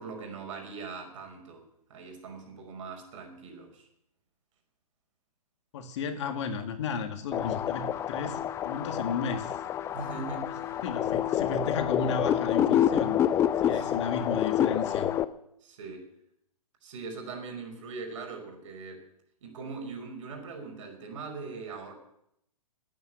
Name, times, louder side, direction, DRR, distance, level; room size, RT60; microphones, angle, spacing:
voice 1, 0.0-3.9 9.9-10.8 13.7-13.9 15.6-16.1 16.8-19.0 19.4-21.9, right 4 dB, 50° right, 4 dB, 5.4 m, -41 dB
voice 2, 5.7-9.6 10.8-13.2 13.6-15.1, left 5 dB, 45° left, 8 dB, 1.9 m, -34 dB
sound 1, 7.3-15.2, left 10 dB, 15° left, 0.5 m, -28 dB
19.5 x 9.2 x 7.9 m, 0.76 s
figure-of-eight pair, 125°, 20 cm